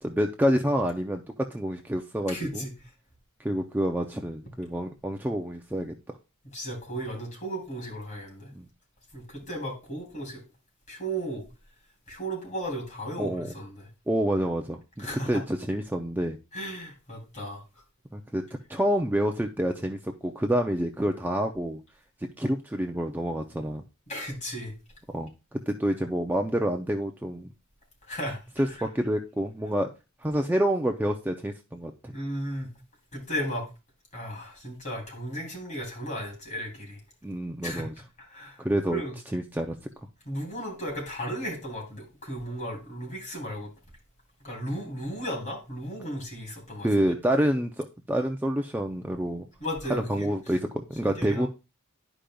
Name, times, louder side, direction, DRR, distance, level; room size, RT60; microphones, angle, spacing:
voice 1, 0.0-2.7 3.4-5.9 8.5-8.7 13.2-13.5 14.1-16.4 18.1-18.4 18.7-21.8 22.4-23.8 25.1-27.5 28.6-29.9 30.2-32.1 37.2-37.9 38.6-39.0 39.3-39.8 46.8-49.5 49.9-51.5, equal, 10° right, 0.4 m, -28 dB
voice 2, 2.3-2.7 6.5-8.5 9.1-10.4 10.9-11.4 12.1-13.9 15.0-15.4 16.5-17.6 24.1-24.7 28.1-28.4 32.1-32.7 33.1-33.7 34.1-37.0 37.6-37.9 38.2-38.6 38.9-39.1 40.2-43.7 44.4-46.9 49.6-50.3 51.0-51.5, equal, 35° left, 3.0 m, -35 dB
11.5 x 5.0 x 2.3 m
head